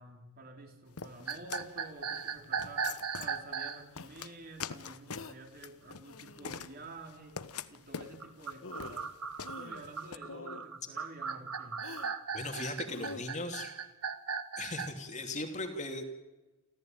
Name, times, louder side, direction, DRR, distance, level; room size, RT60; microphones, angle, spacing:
voice 1, 0.0-9.1 9.5-11.8, right 2 dB, 40° right, 3 dB, 4.1 m, -50 dB
sound 1, 1.0-10.2, left 6 dB, 85° left, 1.1 m, -45 dB
sound 2, 1.3-3.8 8.2-14.9, right 6 dB, 85° right, 1.6 m, -37 dB
sound 3, 4.0-4.1 5.1-5.4 6.0-6.6 8.2-8.3 8.6-9.1 9.4-9.9 10.2-10.7 11.8-12.1 12.8-13.2, left 3 dB, 60° left, 1.3 m, -47 dB
voice 2, 12.3-13.7 14.6-16.0, left 2 dB, 35° left, 4 dB, 2.9 m, -38 dB
29.0 x 15.0 x 9.1 m, 1.1 s
head